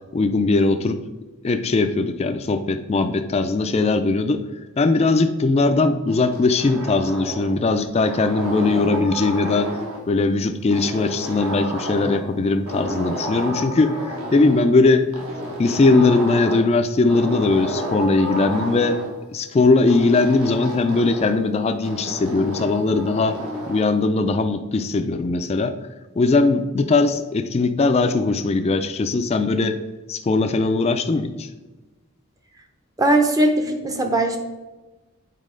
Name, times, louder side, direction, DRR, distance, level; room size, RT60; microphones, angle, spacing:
voice 1, 0.1-1.0 1.4-4.4 4.8-9.7 10.1-14.0 14.3-15.1 15.6-19.0 19.3-23.4 23.7-25.7 26.2-29.8 30.1-31.5, left 3 dB, 30° left, 8 dB, 0.3 m, -20 dB
sound 1, 6.1-7.6 8.0-10.1 10.7-12.3 12.6-14.7 15.1-16.7 17.1-19.1 19.9-21.4 21.8-23.9, equal, 70° right, 1.6 m, -31 dB
voice 2, 33.0-34.4, right 1 dB, 15° right, 4 dB, 0.6 m, -19 dB
8.3 x 4.1 x 3.7 m, 1.2 s
head